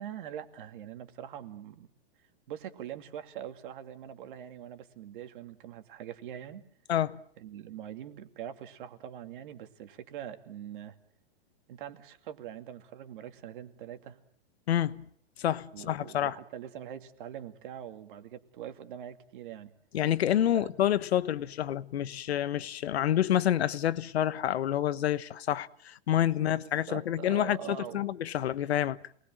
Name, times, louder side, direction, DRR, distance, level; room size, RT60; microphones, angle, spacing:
voice 1, 0.0-1.9 2.5-6.6 7.4-10.9 11.7-14.2 15.7-19.7 20.5-20.7 26.4-28.1, right 10 dB, 55° right, 2.4 m, -43 dB
voice 2, 6.9-7.2 14.7-15.0 15.4-16.3 19.9-29.0, left 11 dB, 80° left, 1.2 m, -28 dB
28.0 x 20.5 x 7.6 m
supercardioid pair, 165°, 32 cm